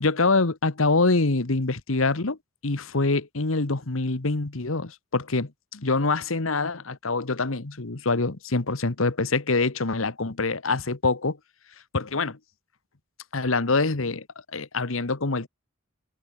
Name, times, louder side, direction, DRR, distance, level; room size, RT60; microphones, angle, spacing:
voice 1, 0.0-2.4 2.6-11.4 11.9-12.4 13.3-14.2 14.5-15.5, left 3 dB, 75° left, 1.4 m, -25 dB
open air
head